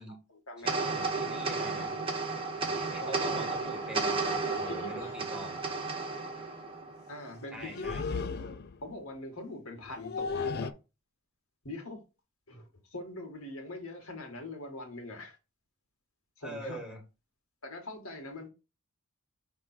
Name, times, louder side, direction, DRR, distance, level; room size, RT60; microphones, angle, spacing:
voice 1, 0.0-1.0 3.0-3.4 4.0-4.2 4.7-5.5 7.1-10.7 11.6-12.0 12.5-15.4 16.4-16.8 17.6-18.5, left 2 dB, 75° left, 2.1 m, -43 dB
voice 2, 0.6-1.9 2.7-5.6 7.5-8.2 16.4-17.0, right 1 dB, 5° right, 1.7 m, -44 dB
sound 1, 0.7-7.3, right 3 dB, 25° right, 1.2 m, -33 dB
sound 2, 2.6-2.8 4.0-4.1 4.5-4.7 5.0-5.2 7.6-8.9 9.8-10.7, left 5 dB, 45° left, 0.4 m, -35 dB
6.5 x 3.7 x 4.5 m
head